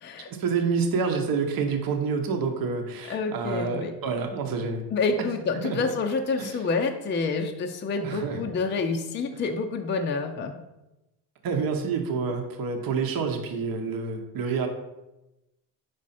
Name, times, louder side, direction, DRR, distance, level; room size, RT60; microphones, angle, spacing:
voice 1, 0.3-4.9 5.2-5.3 5.5-5.8 6.4-6.6 8.0-8.4 9.3-9.4 11.4-14.7, right 5 dB, 55° right, 4 dB, 0.9 m, -28 dB
voice 2, 3.1-3.9 4.9-10.6, left 4 dB, 25° left, 4 dB, 0.5 m, -28 dB
5.1 x 4.8 x 4.2 m, 0.97 s
cardioid pair, 115°, 43 cm